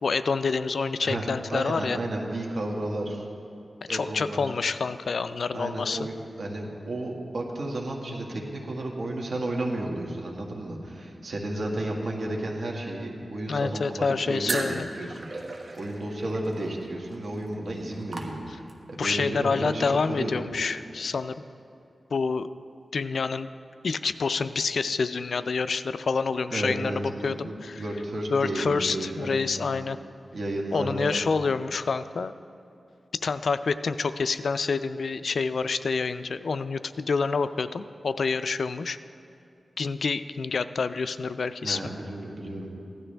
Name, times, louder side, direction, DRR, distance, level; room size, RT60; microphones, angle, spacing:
voice 1, 0.0-2.0 3.9-6.1 13.5-14.9 19.0-21.3 22.1-22.5 22.9-23.5 23.8-27.8 28.3-30.0 30.7-32.3 33.2-39.0 39.8-41.8, left 4 dB, 70° left, 12 dB, 0.3 m, -27 dB
voice 2, 1.0-3.2 3.9-4.4 5.5-15.5 15.8-20.4 26.5-29.5 30.3-31.2 41.6-42.7, right 1 dB, 70° right, 0 dB, 1.7 m, -32 dB
sound 1, 14.4-18.9, right 2 dB, 50° right, 1.3 m, -37 dB
16.0 x 12.0 x 3.4 m, 2.6 s
wide cardioid pair, 80°, 0 cm